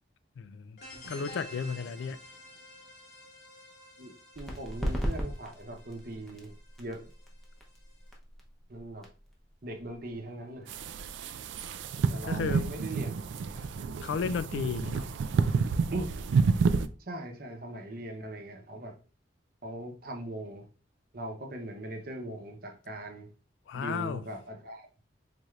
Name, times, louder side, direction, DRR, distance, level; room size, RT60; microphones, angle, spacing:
voice 1, 0.4-0.8 1.1-2.2 12.2-12.7 14.0-15.1 23.7-24.2, left 6 dB, 80° left, 0.3 m, -33 dB
sound 1, 0.8-8.1, left 1 dB, 60° left, 1.1 m, -51 dB
voice 2, 4.0-7.1 8.7-9.1 9.6-10.7 12.1-13.1 13.4-13.7 15.9-16.1 17.0-18.9 19.6-20.7 21.1-23.3 23.7-24.9, right 1 dB, 50° right, 0.8 m, -40 dB
sound 2, 4.3-11.7, equal, ahead, 0.7 m, -39 dB
sound 3, 10.7-16.9, right 5 dB, 80° right, 0.3 m, -29 dB
4.0 x 3.2 x 2.4 m
head